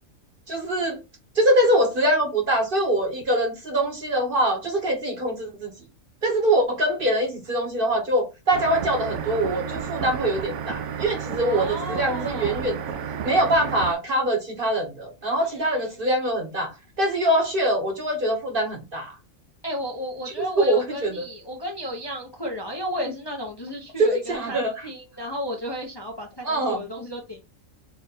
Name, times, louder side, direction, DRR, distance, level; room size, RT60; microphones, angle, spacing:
voice 1, 0.5-1.0 1.4-5.7 6.2-12.8 13.2-16.7 17.0-19.1 20.6-21.3 24.0-24.7 26.4-26.8, right 1 dB, 45° right, 1.2 m, -23 dB
sound 1, 8.5-13.9, right 7 dB, 70° right, 0.9 m, -32 dB
voice 2, 11.4-12.6 15.4-16.1 19.6-27.4, equal, 25° left, 0.7 m, -33 dB
4.2 x 2.5 x 4.1 m
omnidirectional pair, 1.4 m